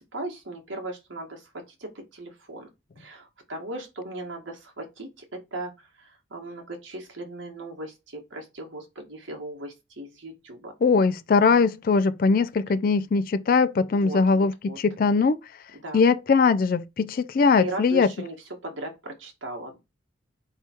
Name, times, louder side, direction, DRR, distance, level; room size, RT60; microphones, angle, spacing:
voice 1, 0.0-2.7 2.9-10.7 13.9-14.8 15.7-16.0 17.6-18.3 18.6-19.8, right 2 dB, 80° right, 1.5 m, -38 dB
voice 2, 10.8-15.4 15.9-18.1, left 4 dB, 45° left, 0.3 m, -21 dB
4.4 x 3.4 x 2.9 m
head